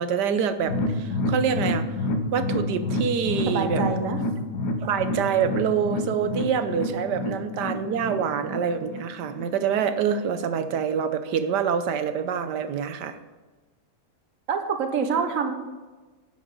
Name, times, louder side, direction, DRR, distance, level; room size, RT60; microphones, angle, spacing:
voice 1, 0.0-1.8 2.3-3.8 4.8-13.2, right 7 dB, 85° right, 10 dB, 1.4 m, -26 dB
sound 1, 0.6-9.9 10.2-10.3 10.7-10.8, left 1 dB, 75° left, 1.5 m, -29 dB
voice 2, 3.5-4.2 14.5-15.5, right 5 dB, 55° right, 6 dB, 1.5 m, -26 dB
11.5 x 9.6 x 4.0 m, 1.3 s
omnidirectional pair, 1.8 m